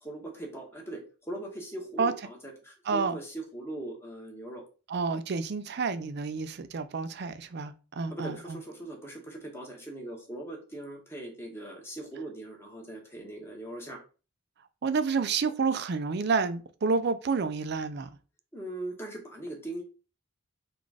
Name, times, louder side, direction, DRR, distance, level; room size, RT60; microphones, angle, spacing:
voice 1, 0.0-4.6 8.1-14.0 18.5-19.8, right 1 dB, 10° left, 1.1 m, -40 dB
voice 2, 2.9-3.2 4.9-8.6 14.8-18.1, right 4 dB, 50° right, 0.4 m, -29 dB
3.9 x 2.5 x 4.7 m
head